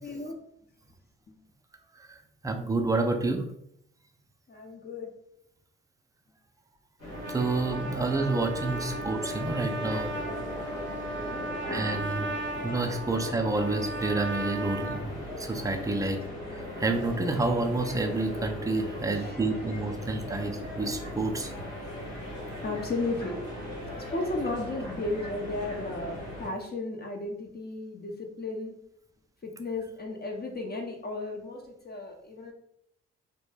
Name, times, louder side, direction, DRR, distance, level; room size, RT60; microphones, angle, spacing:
voice 1, 0.0-0.4 1.3-1.4 4.5-5.1 7.8-8.0 8.6-8.7 11.1-11.6 19.1-19.4 22.6-23.4 24.0-28.8 29.4-32.5, left 2 dB, 30° left, 1 dB, 0.6 m, -35 dB
voice 2, 2.4-3.4 7.3-10.1 11.7-12.3 12.6-16.2 16.8-21.5, right 3 dB, 10° right, 5 dB, 0.4 m, -29 dB
sound 1, 7.0-26.5, left 1 dB, 85° left, 1.0 m, -38 dB
Trumpet, 7.0-15.0, right 2 dB, 35° right, 0.8 m, -36 dB
2.1 x 2.1 x 3.2 m, 0.73 s
hypercardioid pair, 45°, 32 cm